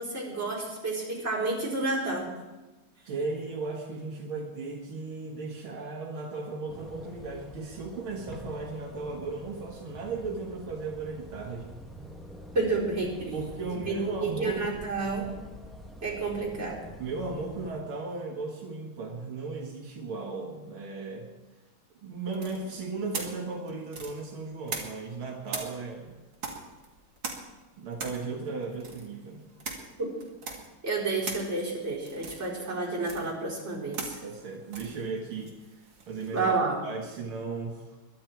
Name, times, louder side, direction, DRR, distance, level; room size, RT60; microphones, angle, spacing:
voice 1, 0.0-2.3 12.5-13.4 13.7-15.3 16.0-16.8 30.8-34.2 36.3-36.8, right 3 dB, 30° right, -5 dB, 4.8 m, -30 dB
voice 2, 3.1-11.7 13.3-14.8 17.0-21.3 22.0-26.2 27.8-29.4 34.2-36.5 36.8-38.0, right 3 dB, 80° right, 0 dB, 2.4 m, -36 dB
sound 1, 6.7-17.7, equal, ahead, 1.1 m, -46 dB
sound 2, 22.3-25.2 25.5-36.4, right 4 dB, 65° right, 2.7 m, -41 dB
22.5 x 11.0 x 4.6 m, 1.1 s
omnidirectional pair, 2.3 m